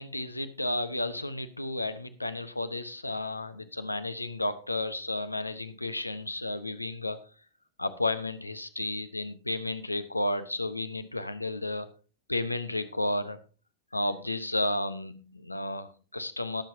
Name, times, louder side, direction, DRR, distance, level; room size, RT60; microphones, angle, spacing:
voice 1, 0.0-7.2 7.8-11.9 12.3-13.4 13.9-16.6, left 2 dB, 85° left, 11 dB, 1.0 m, -32 dB
20.5 x 7.6 x 2.7 m, 0.35 s
figure-of-eight pair, 90°, 0 cm